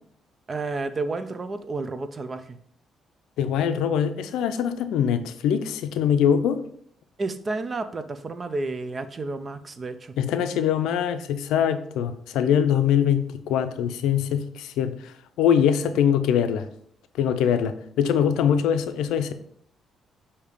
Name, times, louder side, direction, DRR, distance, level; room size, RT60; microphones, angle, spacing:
voice 1, 0.5-2.6 7.2-10.1, right 3 dB, 35° right, 0.6 m, -31 dB
voice 2, 3.4-6.6 10.2-16.7 17.2-19.3, left 8 dB, 90° left, 0.5 m, -23 dB
6.6 x 2.8 x 5.0 m
cardioid pair, 90°, 0 cm